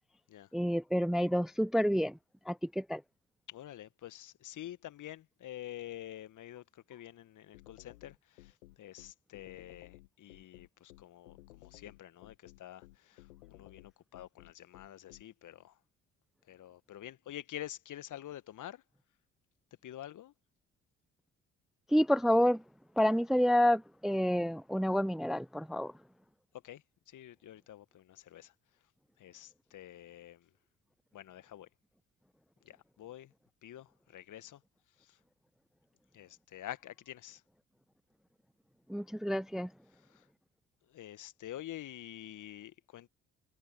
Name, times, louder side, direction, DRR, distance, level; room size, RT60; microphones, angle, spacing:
voice 1, 0.5-2.2 2.5-3.0 21.9-22.6 23.0-25.9 38.9-39.7, equal, ahead, 0.6 m, -29 dB
voice 2, 3.5-15.8 16.4-18.8 19.8-20.3 26.6-28.5 29.2-30.5 31.1-31.7 32.6-33.3 33.6-34.6 35.0-35.2 36.1-37.4 39.9-40.3 40.9-43.1, left 12 dB, 55° left, 1.8 m, -48 dB
sound 1, 7.5-15.2, left 19 dB, 80° left, 2.1 m, -56 dB
figure-of-eight pair, 45°, 37 cm